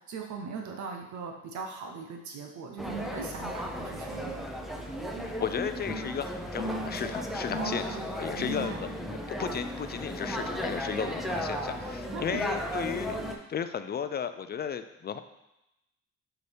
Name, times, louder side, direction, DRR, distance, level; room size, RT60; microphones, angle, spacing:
voice 1, 0.0-4.4 7.6-8.1 8.4-8.8 12.1-12.5, right 4 dB, 70° right, 2 dB, 0.8 m, -39 dB
sound 1, 2.8-13.3, equal, ahead, 0.8 m, -35 dB
voice 2, 5.2-8.9 9.3-15.2, left 7 dB, 35° left, 10 dB, 0.5 m, -34 dB
6.8 x 5.0 x 3.4 m, 0.91 s
cardioid pair, 90°, 30 cm